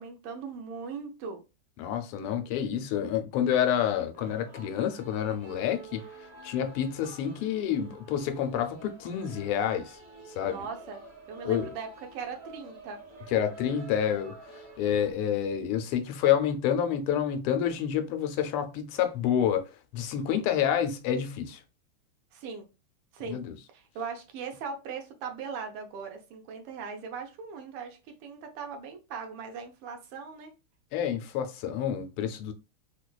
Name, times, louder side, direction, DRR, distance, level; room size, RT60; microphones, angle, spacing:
voice 1, 0.0-1.4 10.4-11.0 11.3-13.0 22.3-22.7 23.1-23.4 23.7-30.5, right 5 dB, 90° right, 1.7 m, -39 dB
voice 2, 1.8-6.0 6.4-10.0 10.4-10.6 11.4-11.7 13.3-14.3 14.8-19.7 19.9-21.6 23.3-23.5 30.9-32.5, left 9 dB, 80° left, 1.5 m, -28 dB
sound 1, 4.1-15.1, right 2 dB, 40° right, 1.1 m, -49 dB
4.7 x 2.2 x 2.3 m
omnidirectional pair, 2.4 m